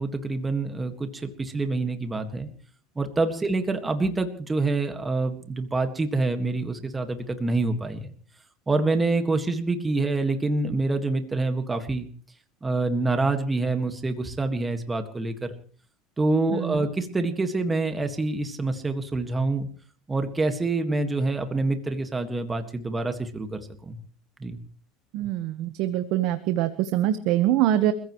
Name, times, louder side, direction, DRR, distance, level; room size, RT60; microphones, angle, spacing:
voice 1, 0.0-2.5 3.0-8.1 8.7-12.1 12.6-15.6 16.2-19.7 20.1-24.0 24.4-24.6, right 3 dB, 15° right, 7 dB, 1.8 m, -26 dB
voice 2, 16.5-16.8 25.1-27.9, right 13 dB, 65° right, 10 dB, 1.3 m, -24 dB
29.5 x 15.5 x 3.2 m, 0.42 s
supercardioid pair, 125°, 0 cm